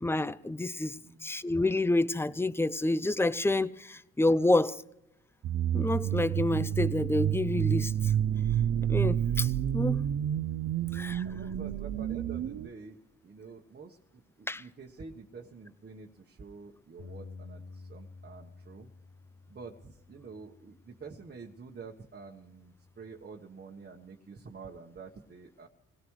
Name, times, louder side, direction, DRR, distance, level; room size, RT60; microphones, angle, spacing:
voice 1, 0.0-4.8 5.7-8.1 8.9-10.1 10.9-11.2 14.5-14.6, left 2 dB, 10° left, 0.5 m, -28 dB
sound 1, 5.4-12.7, right 10 dB, 60° right, 0.6 m, -29 dB
voice 2, 11.2-18.9 19.5-25.7, right 4 dB, 35° right, 1.2 m, -48 dB
Bass guitar, 17.0-21.4 22.1-23.2, left 4 dB, 85° left, 2.5 m, -51 dB
25.5 x 17.0 x 3.2 m
cardioid pair, 90°, 30 cm